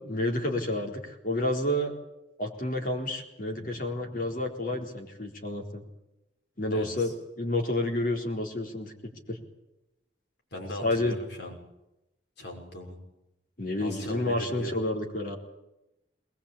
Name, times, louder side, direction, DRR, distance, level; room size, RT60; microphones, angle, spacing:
voice 1, 0.0-1.9 2.4-5.8 6.6-8.9 9.3-9.4 10.8-11.2 13.6-15.4, left 1 dB, 45° left, 2 dB, 4.1 m, -30 dB
voice 2, 6.7-7.1 10.5-11.5 12.4-13.0 13.8-14.7, equal, 70° left, 1 dB, 6.1 m, -38 dB
21.5 x 20.5 x 8.7 m, 0.90 s
head